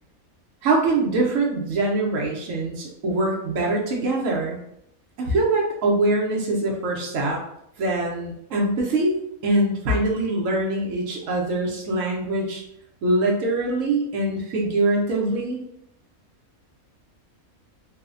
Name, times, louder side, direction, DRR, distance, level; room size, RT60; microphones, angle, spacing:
voice 1, 0.6-4.6 5.2-7.4 7.8-12.6 13.0-15.6, right 2 dB, 70° right, -1 dB, 1.0 m, -23 dB
3.1 x 2.0 x 2.4 m, 0.75 s
omnidirectional pair, 1.5 m